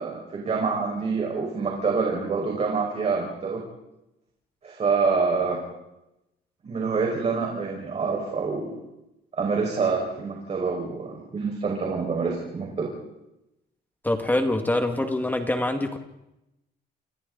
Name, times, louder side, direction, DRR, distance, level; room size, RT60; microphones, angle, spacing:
voice 1, 0.0-3.6 4.6-5.6 6.6-8.7 9.3-12.9, right 4 dB, 35° right, -1 dB, 5.6 m, -26 dB
voice 2, 14.0-16.0, left 1 dB, 10° left, 5 dB, 2.1 m, -25 dB
29.5 x 28.5 x 4.1 m, 0.90 s
cardioid pair, 145°, 18 cm